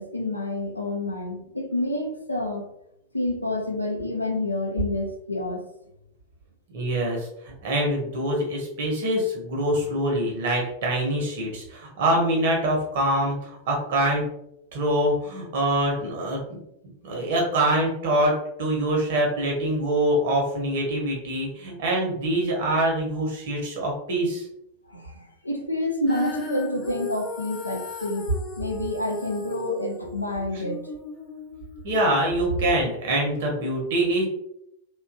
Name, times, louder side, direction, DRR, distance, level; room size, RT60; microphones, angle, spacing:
voice 1, 0.0-2.7 3.1-5.6 24.9-30.9, left 1 dB, 85° left, 2 dB, 0.4 m, -28 dB
voice 2, 6.7-14.2 14.7-16.6 17.0-24.4 31.8-34.3, right 1 dB, 55° right, -1 dB, 0.9 m, -24 dB
Female singing, 26.1-32.3, left 2 dB, 30° left, 0.6 m, -36 dB
2.7 x 2.3 x 2.5 m, 0.78 s
figure-of-eight pair, 90°, 0 cm